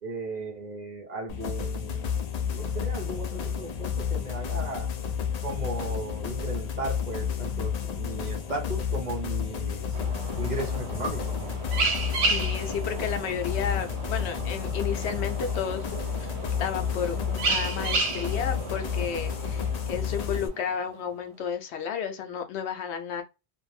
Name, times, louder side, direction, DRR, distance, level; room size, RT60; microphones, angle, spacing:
voice 1, 0.0-4.9 5.4-10.0 10.4-11.4, right 2 dB, 45° right, 0.8 m, -36 dB
sound 1, 1.3-20.5, left 7 dB, 55° left, 0.4 m, -31 dB
sound 2, 9.9-20.9, right 3 dB, 80° right, 0.9 m, -33 dB
voice 2, 12.3-15.9 16.2-16.3 16.6-23.2, left 7 dB, 85° left, 0.9 m, -32 dB
2.5 x 2.0 x 3.1 m
omnidirectional pair, 1.1 m